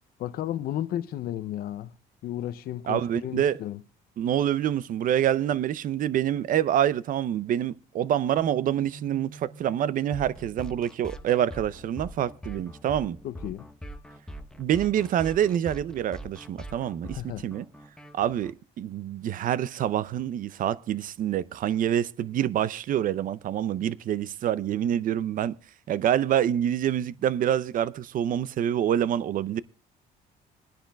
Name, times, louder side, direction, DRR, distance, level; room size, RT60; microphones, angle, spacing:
voice 1, 0.2-1.9 2.2-3.8 13.2-13.7 17.1-17.5, left 12 dB, 65° left, 0.6 m, -33 dB
voice 2, 2.9-3.6 4.2-13.2 14.6-17.7 18.1-25.5 25.9-29.6, right 10 dB, 55° right, 0.5 m, -26 dB
sound 1, 8.4-12.4, right 4 dB, 35° right, 1.2 m, -48 dB
sound 2, 10.1-18.5, equal, 5° left, 0.9 m, -42 dB
25.0 x 10.0 x 2.3 m
cardioid pair, 110°, 17 cm